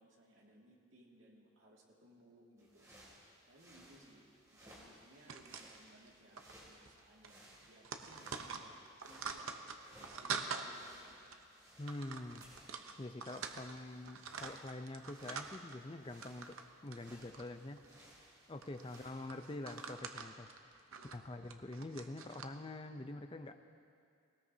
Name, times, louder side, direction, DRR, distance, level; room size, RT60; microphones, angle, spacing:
voice 1, 0.0-2.9 3.5-8.8 9.1-9.6 9.8-11.2 18.8-19.3 20.9-21.2, right 1 dB, 65° right, -2 dB, 2.2 m, -63 dB
sound 1, 2.6-19.9, right 1 dB, 15° right, 2.7 m, -62 dB
sound 2, 5.3-6.1 6.4-6.5 6.8-7.0 7.2-10.7 11.3-11.4 11.9-13.8 14.0-15.8 16.1-16.7 16.9-18.0 18.6-22.4, right 5 dB, 85° right, 0.8 m, -45 dB
voice 2, 11.8-12.4 13.0-16.6 16.8-17.8 18.5-20.5 21.1-23.6, left 2 dB, 25° left, 7 dB, 0.5 m, -46 dB
19.0 x 18.0 x 2.8 m, 2.4 s
head